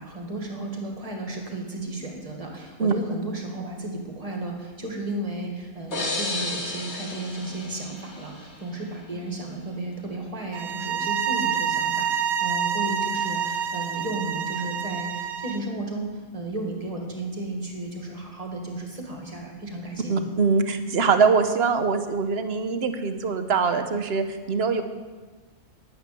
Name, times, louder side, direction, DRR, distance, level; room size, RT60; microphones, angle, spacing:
voice 1, 0.0-20.3, right 2 dB, 25° right, 1 dB, 2.0 m, -34 dB
sound 1, 5.9-8.7, left 2 dB, 70° left, 3.2 m, -32 dB
sound 2, 10.5-15.7, right 7 dB, 85° right, 1.2 m, -27 dB
voice 2, 20.1-24.8, right 5 dB, 50° right, 9 dB, 1.0 m, -23 dB
11.0 x 9.4 x 6.9 m, 1.4 s
omnidirectional pair, 1.5 m